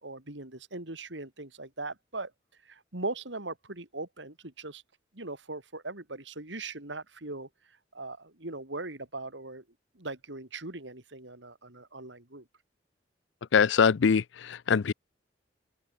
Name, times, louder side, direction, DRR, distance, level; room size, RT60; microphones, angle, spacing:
voice 1, 0.0-2.3 2.7-4.8 5.1-7.5 7.9-9.6 9.9-12.4, right 2 dB, 85° right, 4.0 m, -39 dB
voice 2, 13.5-14.9, left 6 dB, 85° left, 0.5 m, -23 dB
open air
head